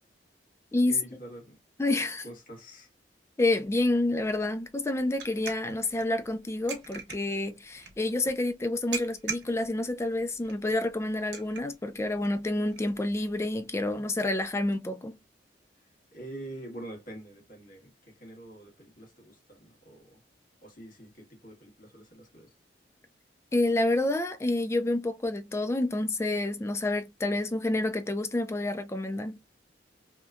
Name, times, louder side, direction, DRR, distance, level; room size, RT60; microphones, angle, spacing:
voice 1, 0.9-1.6 2.2-2.9 15.8-15.9 16.1-20.2 20.6-22.5, right 1 dB, 50° left, 1.3 m, -46 dB
voice 2, 1.8-2.2 3.4-15.2 23.5-29.4, left 2 dB, 15° left, 0.3 m, -28 dB
sound 1, 3.5-14.8, right 6 dB, 75° right, 0.9 m, -45 dB
2.8 x 2.3 x 2.4 m
head